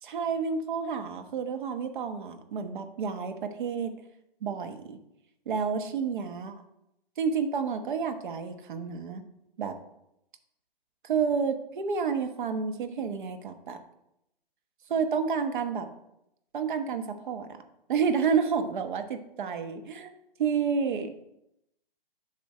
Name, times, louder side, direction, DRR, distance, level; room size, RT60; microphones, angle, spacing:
voice 1, 0.0-3.9 4.4-5.0 5.5-6.5 7.2-9.2 9.6-9.8 11.0-13.8 14.9-15.9 16.5-17.6 17.9-20.1 20.4-21.3, right 6 dB, 55° right, 7 dB, 1.2 m, -30 dB
11.5 x 5.9 x 3.3 m, 0.83 s
figure-of-eight pair, 130°, 29 cm